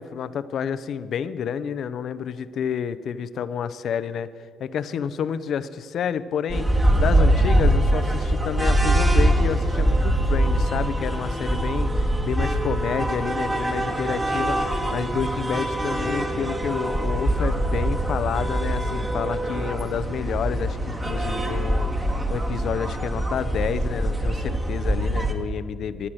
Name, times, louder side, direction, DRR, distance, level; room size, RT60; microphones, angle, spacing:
voice 1, 0.0-4.3 4.6-26.1, left 7 dB, 65° left, 14 dB, 0.6 m, -29 dB
sound 1, 6.5-25.3, right 1 dB, 25° right, 1.8 m, -23 dB
15.0 x 9.8 x 6.3 m, 2.2 s
supercardioid pair, 55°, 0 cm